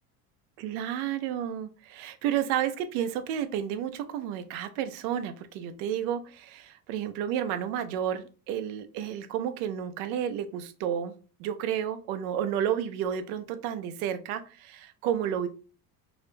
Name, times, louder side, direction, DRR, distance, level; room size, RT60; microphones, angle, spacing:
voice 1, 0.6-11.1 11.4-15.5, right 9 dB, 80° right, 10 dB, 0.5 m, -31 dB
2.3 x 2.1 x 3.0 m, 0.36 s
supercardioid pair, 95°, 43 cm